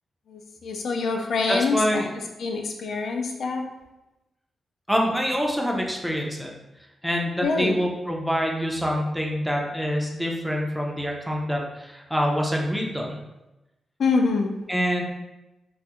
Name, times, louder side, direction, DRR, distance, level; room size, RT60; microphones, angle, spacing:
voice 1, 0.3-2.0 2.4-3.6 7.4-7.7 14.0-14.5, left 4 dB, 75° left, 3 dB, 0.3 m, -25 dB
voice 2, 1.5-2.0 4.9-6.5 7.0-13.2 14.7-15.0, equal, 5° right, -1 dB, 0.4 m, -26 dB
2.2 x 2.0 x 2.8 m, 0.98 s
cardioid pair, 100°, 0 cm